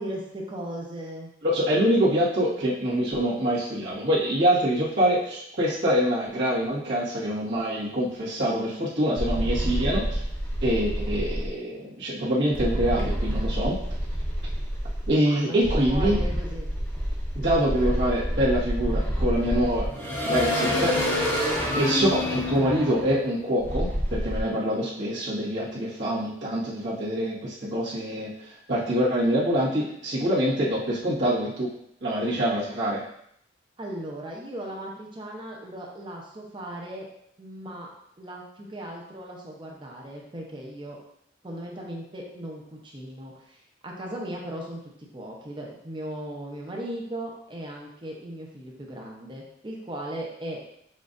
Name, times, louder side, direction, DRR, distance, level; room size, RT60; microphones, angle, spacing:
voice 1, 0.0-1.3 15.2-16.7 33.8-37.1 37.4-37.9 38.2-41.0 41.4-50.7, right 1 dB, 25° right, -1 dB, 0.8 m, -37 dB
voice 2, 1.4-10.2 10.6-13.8 15.1-16.2 17.3-21.0 21.7-31.7 32.0-33.0, equal, 65° right, -8 dB, 1.5 m, -25 dB
sound 1, 9.2-11.5 12.5-15.1 15.6-24.4, equal, 10° left, 0.7 m, -27 dB
7.1 x 2.6 x 2.5 m, 0.73 s
head